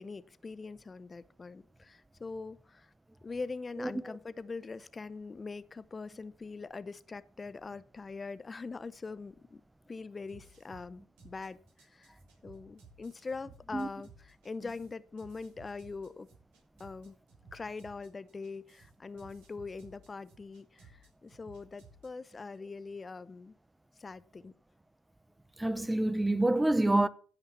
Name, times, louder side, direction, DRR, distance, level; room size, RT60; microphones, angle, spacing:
voice 1, 0.0-2.9 3.2-9.6 9.9-16.3 16.8-17.2 17.5-23.5 24.0-24.5, left 4 dB, 30° left, 0.8 m, -43 dB
sound 1, 10.2-22.6, right 3 dB, 75° right, 5.3 m, -58 dB
voice 2, 25.6-27.1, right 2 dB, 10° right, 0.8 m, -27 dB
15.5 x 5.8 x 7.2 m
hypercardioid pair, 60°, 0 cm